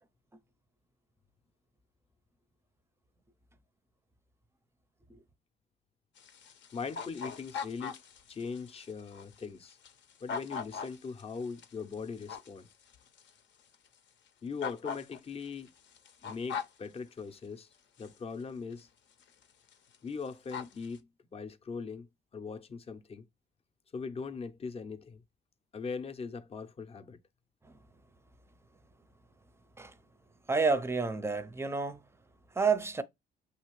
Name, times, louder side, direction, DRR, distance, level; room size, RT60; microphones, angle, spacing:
sound 1, 6.2-13.3 13.7-13.8 14.6-16.9 18.0-18.1 18.7-18.8 19.2-19.4 19.7-20.0 20.2-21.0, left 6 dB, 65° left, 0.7 m, -41 dB
voice 1, 6.7-8.0 8.3-9.8 10.2-12.7 14.4-15.7 16.2-17.7 18.0-18.9 20.0-23.2 23.9-25.2 25.7-27.2, left 5 dB, 30° left, 0.6 m, -40 dB
voice 2, 30.5-32.0 32.5-33.0, right 4 dB, 15° right, 0.5 m, -29 dB
5.5 x 2.8 x 3.0 m
cardioid pair, 90°, 20 cm